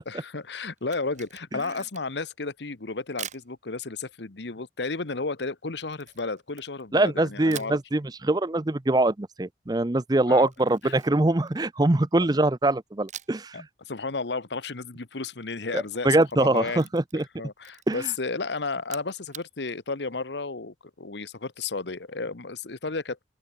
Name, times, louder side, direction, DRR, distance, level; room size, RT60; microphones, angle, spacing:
voice 1, 0.0-7.8 10.3-10.5 10.8-11.0 13.5-16.9 17.1-23.3, left 3 dB, 80° left, 1.2 m, -33 dB
Camera, 0.8-2.3 3.2-3.5 5.9-7.1 7.5-7.8 10.5-12.0 13.1-13.5 13.8-13.9 15.9-17.3 17.6-18.1 18.8-19.5, right 10 dB, 40° right, 7.9 m, -44 dB
voice 2, 6.9-13.6 15.7-17.2 17.9-18.1, right 2 dB, 20° right, 0.6 m, -23 dB
open air
head